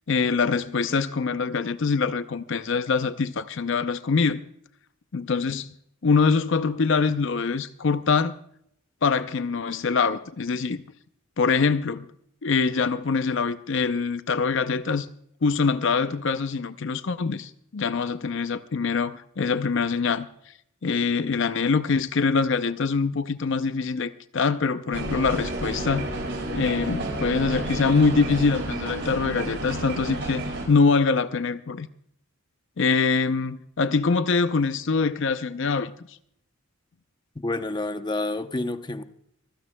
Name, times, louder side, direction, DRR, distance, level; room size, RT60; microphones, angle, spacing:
voice 1, 0.1-4.4 5.1-5.7 6.0-8.3 9.0-10.8 11.4-12.1 12.4-15.1 15.4-20.3 20.8-26.1 26.5-31.9 32.8-36.2, left 4 dB, 60° left, 0.6 m, -24 dB
sound 1, 24.9-30.7, right 1 dB, 60° right, 4.5 m, -31 dB
voice 2, 37.4-39.0, left 2 dB, 20° left, 0.7 m, -29 dB
25.5 x 16.0 x 2.2 m
head